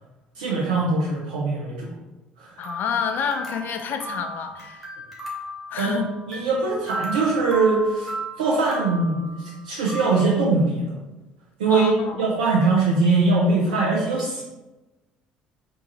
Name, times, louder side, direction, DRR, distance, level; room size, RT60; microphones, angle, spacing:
voice 1, 0.4-2.0 2.4-2.5 5.8-10.9 11.6-14.4, right 3 dB, 75° right, -4 dB, 0.5 m, -22 dB
voice 2, 2.6-4.9 5.7-6.1 11.7-12.4, left 6 dB, 45° left, 7 dB, 0.4 m, -29 dB
sound 1, 2.6-10.2, right 1 dB, 5° right, 1.2 m, -35 dB
3.6 x 2.6 x 2.9 m, 1.1 s
figure-of-eight pair, 55°, 4 cm